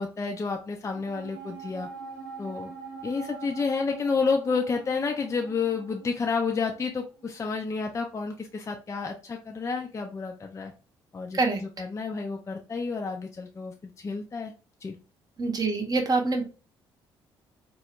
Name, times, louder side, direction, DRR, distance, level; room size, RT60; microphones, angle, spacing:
voice 1, 0.0-1.9 2.4-2.7 3.0-10.7 11.1-14.5 14.8-15.0, left 4 dB, 25° left, 3 dB, 0.4 m, -30 dB
sound 1, 0.9-7.5 7.7-7.8, right 6 dB, 80° left, 1.1 m, -44 dB
voice 2, 15.4-16.4, right 3 dB, 30° right, 4 dB, 0.7 m, -25 dB
2.3 x 2.0 x 2.9 m, 0.33 s
figure-of-eight pair, 45°, 12 cm